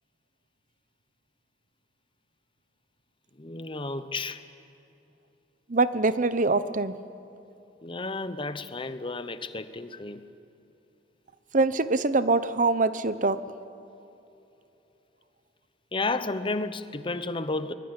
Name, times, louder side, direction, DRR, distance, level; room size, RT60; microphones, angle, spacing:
voice 1, 3.4-4.4 7.8-10.2 15.9-17.7, left 3 dB, 30° left, 1.0 m, -32 dB
voice 2, 5.7-6.9 11.5-13.4, right 3 dB, 45° right, 0.9 m, -24 dB
25.0 x 20.5 x 9.8 m
head